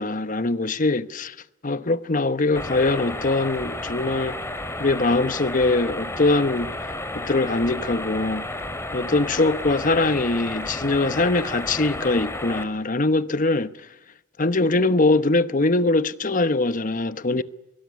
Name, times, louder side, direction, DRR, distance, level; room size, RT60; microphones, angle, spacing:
voice 1, 0.0-1.3 1.6-4.4 4.8-6.7 7.1-8.5 8.9-13.7 14.4-17.4, left 2 dB, 40° left, 1.0 m, -22 dB
sound 1, 2.5-12.6, left 1 dB, 15° left, 2.5 m, -32 dB
24.0 x 23.0 x 8.3 m
head